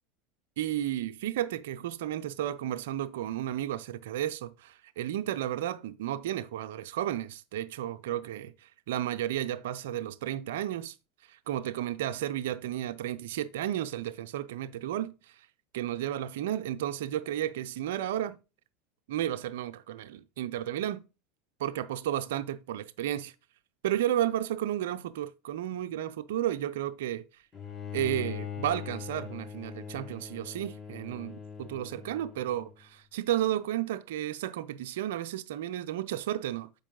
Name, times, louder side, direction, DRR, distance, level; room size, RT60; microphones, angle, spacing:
voice 1, 0.6-10.9 11.3-15.3 15.7-18.4 19.1-21.0 21.6-23.3 23.8-27.2 27.9-36.7, right 12 dB, 75° right, 0.4 m, -33 dB
Bowed string instrument, 27.5-32.7, left 8 dB, 30° left, 1.2 m, -41 dB
6.9 x 5.3 x 3.7 m
hypercardioid pair, 90°, 0 cm